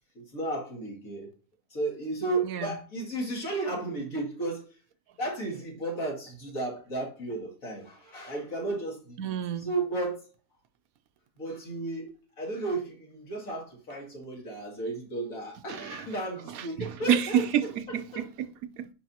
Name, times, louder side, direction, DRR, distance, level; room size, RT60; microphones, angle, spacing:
voice 1, 0.3-1.3 1.7-4.7 5.2-9.3 9.6-10.2 11.4-12.1 12.4-17.4, right 2 dB, 75° left, 2.7 m, -33 dB
voice 2, 2.4-2.8 9.2-9.7 15.7-16.1 16.5-18.9, right 9 dB, 90° right, 1.1 m, -29 dB
8.7 x 5.4 x 2.8 m
omnidirectional pair, 1.4 m